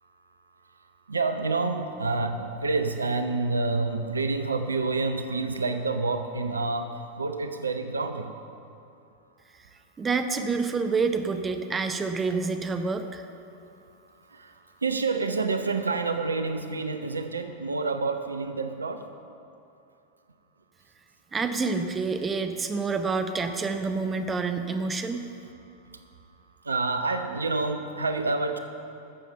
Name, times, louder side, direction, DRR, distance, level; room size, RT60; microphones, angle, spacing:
voice 1, 1.1-8.3 14.3-19.0 25.9-26.0 26.6-28.6, right 3 dB, 75° right, 7 dB, 0.7 m, -28 dB
voice 2, 10.0-13.3 21.3-25.2, right 4 dB, 20° right, 7 dB, 0.8 m, -28 dB
13.0 x 7.3 x 6.7 m, 2.6 s
figure-of-eight pair, 90°, 0 cm